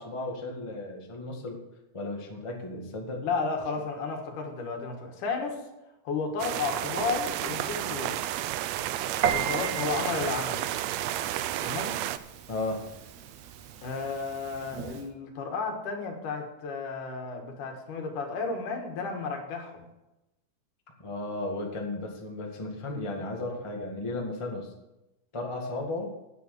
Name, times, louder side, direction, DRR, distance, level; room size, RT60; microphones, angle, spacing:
voice 1, 0.0-1.6 1.9-3.2 12.5-12.8 21.0-24.7 25.3-26.1, left 2 dB, 15° left, 0 dB, 1.1 m, -34 dB
voice 2, 3.2-5.6 6.0-8.2 9.3-10.6 11.6-12.0 13.8-19.9, left 4 dB, 75° left, 3 dB, 3.1 m, -33 dB
sound 1, 6.4-12.2, right 13 dB, 85° right, 1.5 m, -31 dB
Piano, 9.2-15.1, right 9 dB, 70° right, 1.9 m, -36 dB
10.0 x 9.3 x 6.7 m, 0.96 s
omnidirectional pair, 3.7 m